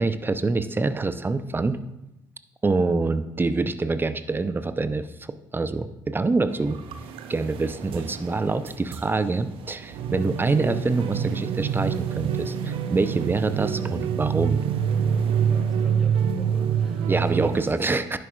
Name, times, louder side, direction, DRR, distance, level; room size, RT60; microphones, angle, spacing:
voice 1, 0.0-1.8 2.6-5.1 5.5-6.8 7.3-14.6 17.1-18.2, right 3 dB, 20° right, 12 dB, 0.6 m, -25 dB
sound 1, 6.5-17.7, right 7 dB, 60° right, 0.6 m, -27 dB
voice 2, 15.5-17.9, equal, ahead, -2 dB, 2.7 m, -43 dB
10.5 x 9.5 x 2.4 m, 0.87 s
figure-of-eight pair, 45°, 10 cm